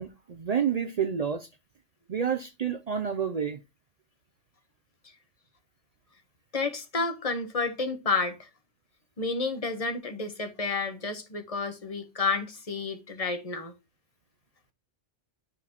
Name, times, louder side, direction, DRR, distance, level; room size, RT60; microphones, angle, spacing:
voice 1, 0.0-1.5 2.1-3.6, right 7 dB, 55° right, 0.4 m, -29 dB
voice 2, 6.5-8.5 9.2-13.7, left 4 dB, 30° left, 1.1 m, -30 dB
9.9 x 5.9 x 3.0 m
omnidirectional pair, 1.2 m